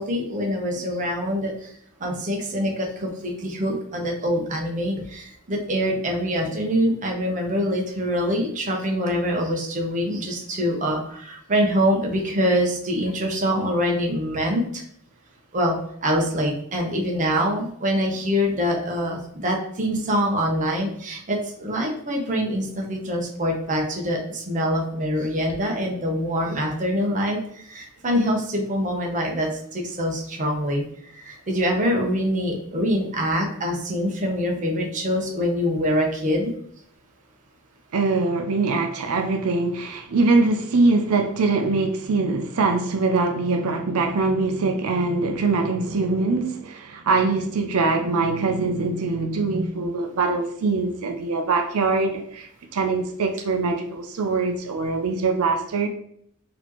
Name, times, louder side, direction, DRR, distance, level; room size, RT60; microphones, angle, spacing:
voice 1, 0.0-1.7 2.0-14.8 15.5-15.8 16.0-30.8 31.1-36.5, equal, 35° right, 0 dB, 0.8 m, -24 dB
voice 2, 37.9-55.9, right 3 dB, 85° right, 4 dB, 0.5 m, -23 dB
4.2 x 2.8 x 2.9 m, 0.68 s
head